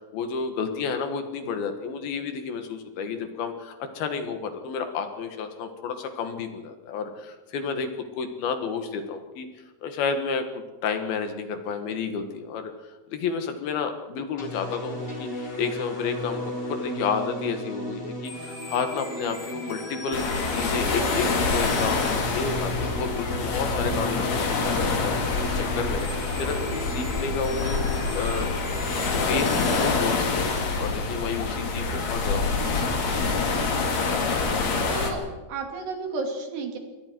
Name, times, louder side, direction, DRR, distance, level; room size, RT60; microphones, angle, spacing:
voice 1, 0.1-7.9 8.2-9.5 9.8-12.7 13.1-16.4 16.7-26.1 26.4-27.8 28.1-28.5 29.3-33.2, left 5 dB, 70° left, 7 dB, 3.3 m, -31 dB
sound 1, 14.4-29.9, equal, 10° left, 3.0 m, -35 dB
sound 2, 20.1-35.1, left 4 dB, 45° left, 3.5 m, -26 dB
voice 2, 34.9-36.8, right 3 dB, 85° right, 3 dB, 4.7 m, -32 dB
28.0 x 22.0 x 4.6 m, 1.3 s
omnidirectional pair, 4.7 m